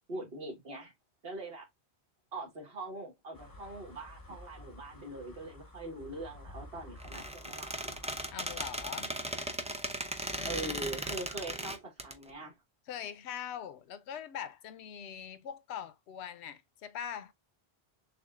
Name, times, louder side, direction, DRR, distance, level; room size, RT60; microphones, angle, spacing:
voice 1, 0.1-0.9 1.2-1.7 2.3-7.9 10.5-12.6, right 2 dB, 65° right, 1.8 m, -42 dB
sound 1, 3.3-8.9, left 1 dB, 20° left, 0.7 m, -51 dB
Squeak, 7.0-12.1, right 1 dB, 10° right, 0.3 m, -37 dB
voice 2, 8.3-9.2 10.3-10.6 12.9-17.3, left 9 dB, 80° left, 0.9 m, -42 dB
6.8 x 2.4 x 2.3 m
omnidirectional pair, 1.1 m